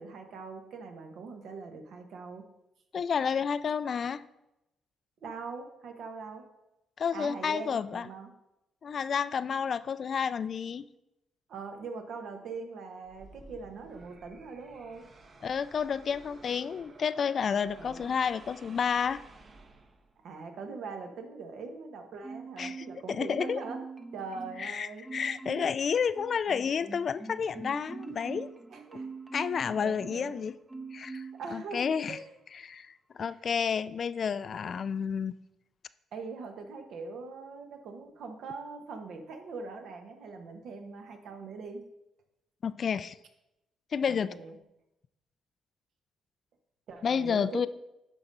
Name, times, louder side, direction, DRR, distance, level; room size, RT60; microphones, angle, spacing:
voice 1, 0.0-2.4 5.2-6.4 7.1-8.3 11.5-15.0 17.8-18.1 20.2-23.8 24.1-25.0 25.6-25.7 28.7-29.1 29.4-29.5 29.8-30.4 31.3-32.3 36.1-41.8 44.1-44.5 46.9-47.7, right 4 dB, 70° right, 5 dB, 1.3 m, -42 dB
voice 2, 2.9-4.2 7.0-8.1 8.8-10.8 15.4-19.2 22.6-23.6 24.6-28.5 29.3-30.5 30.9-32.2 32.5-35.3 42.6-43.2 43.9-44.3 47.0-47.7, left 6 dB, 50° left, 14 dB, 0.3 m, -30 dB
sound 1, 13.0-20.3, right 3 dB, 40° right, 1.0 m, -53 dB
Marimba xylophone, 22.2-23.0 23.3-24.7 25.0-25.8 26.2-30.3 30.7-31.4 31.8-32.0, right 4 dB, 20° right, 0.7 m, -43 dB
11.5 x 3.9 x 5.5 m, 0.90 s
cardioid pair, 90°, 0 cm